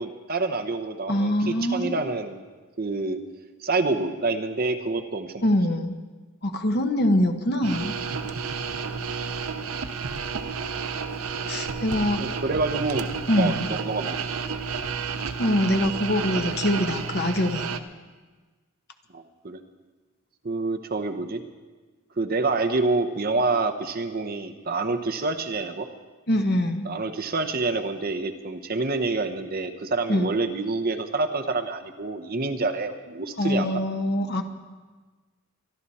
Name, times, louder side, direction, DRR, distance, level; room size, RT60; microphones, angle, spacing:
voice 1, 0.0-2.4 2.8-3.2 3.6-5.4 12.2-13.1 13.4-14.2 19.1-19.6 20.4-21.4 22.2-25.9 26.8-33.8, right 3 dB, 45° right, 6 dB, 0.9 m, -27 dB
voice 2, 1.1-2.0 5.4-6.0 6.4-8.0 11.5-12.2 13.3-13.7 15.4-17.7 26.3-26.8 30.1-30.3 33.4-34.4, left 1 dB, 45° left, 6 dB, 1.1 m, -24 dB
sound 1, 7.6-17.8, right 5 dB, 75° right, 0.8 m, -31 dB
24.5 x 11.5 x 4.2 m, 1.3 s
head